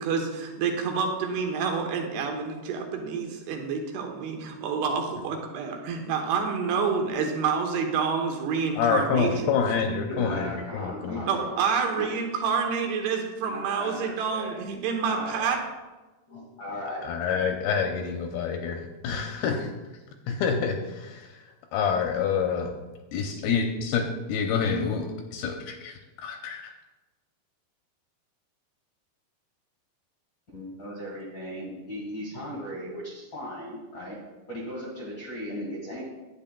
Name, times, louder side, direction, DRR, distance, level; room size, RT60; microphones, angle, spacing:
voice 1, 0.0-9.5 11.3-15.6, right 5 dB, 80° right, 3 dB, 3.0 m, -28 dB
voice 2, 8.8-11.2 17.0-18.7 19.0-19.7 20.3-22.7 23.1-26.7, left 6 dB, 85° left, 3 dB, 2.3 m, -27 dB
voice 3, 10.0-11.5 12.0-12.1 13.4-14.6 15.0-15.5 16.3-17.1 30.5-34.2 34.5-36.0, equal, 70° left, -3 dB, 1.1 m, -37 dB
11.0 x 8.8 x 2.2 m, 1.1 s
omnidirectional pair, 4.7 m